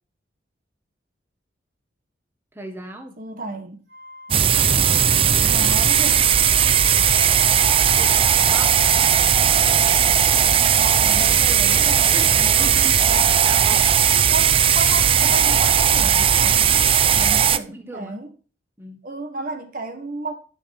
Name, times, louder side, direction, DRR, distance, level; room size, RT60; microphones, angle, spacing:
voice 1, 2.5-3.2 7.9-9.5 12.1-13.9 17.3-18.2 18.8-19.1, right 1 dB, 15° right, 1.4 m, -39 dB
voice 2, 3.2-3.9 4.3-5.1 5.4-6.2 10.4-13.3 14.3-18.3 19.0-20.3, right 2 dB, 50° right, 1.4 m, -32 dB
Wind instrument woodwind instrument, 3.9-12.4, left 2 dB, 75° right, 3.0 m, -40 dB
sound 1, 4.3-17.6, right 8 dB, 30° right, 0.4 m, -17 dB
10.5 x 5.9 x 4.8 m
head